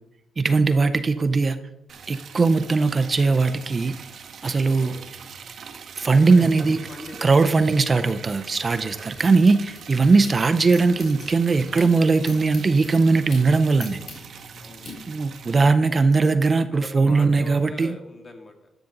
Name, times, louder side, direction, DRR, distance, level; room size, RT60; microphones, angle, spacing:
voice 1, 0.4-1.6 2.1-3.9 4.4-4.9 6.0-6.8 7.2-14.0 15.1-17.9, right 4 dB, 35° right, 10 dB, 0.4 m, -19 dB
Liquid, 1.9-15.6, right 6 dB, 55° right, 0.8 m, -42 dB
voice 2, 6.0-7.4 8.9-9.0 14.6-14.9 16.7-18.5, left 2 dB, 35° left, 4 dB, 1.5 m, -41 dB
sound 1, 8.5-10.3 10.7-14.9, left 3 dB, 60° left, 3.2 m, -43 dB
11.5 x 5.8 x 3.8 m, 0.92 s
cardioid pair, 90°, 0 cm